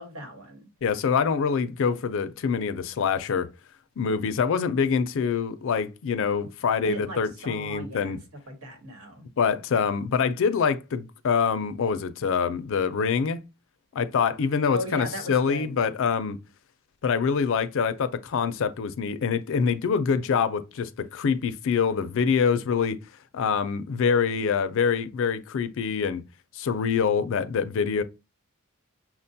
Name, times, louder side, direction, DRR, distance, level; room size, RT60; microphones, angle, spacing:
voice 1, 0.0-0.7 6.8-9.3 14.7-15.8, equal, 75° right, 1.3 m, -37 dB
voice 2, 0.8-3.5 4.0-8.2 9.4-13.4 13.9-16.4 17.0-23.0 23.3-26.2 26.5-28.0, left 6 dB, 65° left, 0.4 m, -25 dB
6.0 x 2.2 x 2.7 m
head